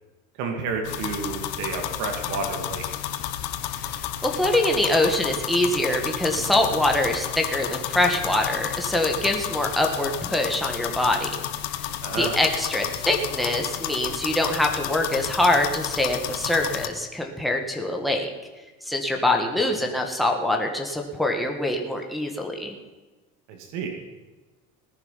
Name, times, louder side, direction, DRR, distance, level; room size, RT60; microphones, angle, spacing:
voice 1, 0.4-2.8 12.0-12.4 19.6-19.7 23.5-23.9, right 4 dB, 75° right, 3 dB, 2.5 m, -30 dB
sound 1, 0.8-16.9, left 12 dB, 90° left, 1.3 m, -31 dB
voice 2, 4.2-11.3 12.2-18.3 18.9-22.8, left 1 dB, ahead, 1 dB, 1.8 m, -24 dB
18.5 x 10.5 x 5.8 m, 1.2 s
cardioid pair, 135°, 30 cm